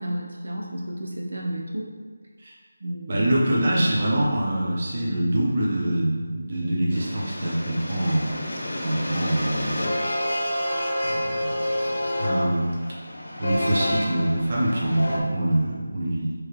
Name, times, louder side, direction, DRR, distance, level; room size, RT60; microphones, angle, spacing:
voice 1, 0.0-1.9 2.8-3.3, right 1 dB, 70° right, -2 dB, 0.7 m, -32 dB
voice 2, 3.1-8.3 8.8-10.0 11.0-11.6 12.0-12.8 13.4-16.3, right 1 dB, 35° right, -5 dB, 0.8 m, -24 dB
sound 1, 6.9-15.2, left 1 dB, 65° left, 0.8 m, -28 dB
4.6 x 3.2 x 3.0 m, 1.5 s
figure-of-eight pair, 175°, 0 cm